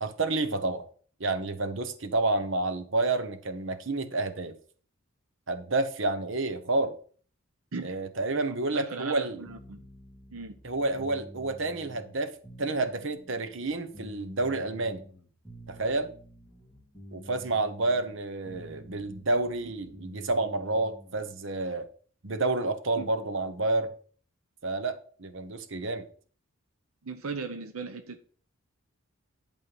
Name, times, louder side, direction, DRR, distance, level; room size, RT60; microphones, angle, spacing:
voice 1, 0.0-0.8 1.2-4.6 5.5-6.9 7.8-9.4 10.6-12.3 12.6-15.0 15.7-16.1 17.1-21.9 22.2-23.9 24.6-26.1, right 2 dB, 60° right, 1.0 m, -29 dB
voice 2, 8.5-9.9 10.3-10.6 23.0-23.1 27.0-28.3, right 4 dB, 80° right, 0.8 m, -38 dB
sound 1, 9.4-21.3, equal, 5° right, 2.7 m, -49 dB
11.0 x 4.5 x 5.4 m
head